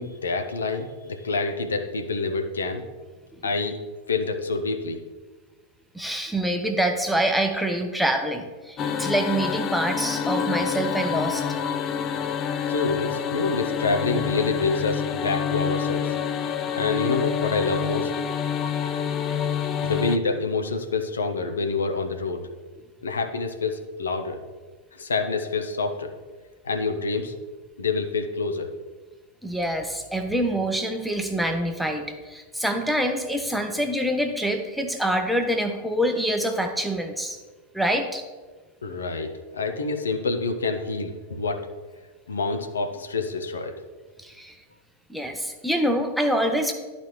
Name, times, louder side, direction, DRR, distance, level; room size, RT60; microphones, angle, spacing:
voice 1, 0.0-2.8 3.4-3.8 4.1-5.0 12.7-16.2 16.7-18.1 19.8-22.4 23.0-24.4 24.9-26.1 26.6-27.3 27.8-28.7 38.8-41.7 42.3-43.7, left 3 dB, 70° left, 6 dB, 0.6 m, -27 dB
voice 2, 5.9-11.4 29.4-37.4 37.7-38.2 44.2-44.6 45.1-46.7, right 1 dB, ahead, 5 dB, 0.7 m, -25 dB
sound 1, 8.8-20.2, left 8 dB, 30° left, 0.3 m, -27 dB
11.5 x 4.1 x 3.1 m, 1.3 s
figure-of-eight pair, 90°, 0 cm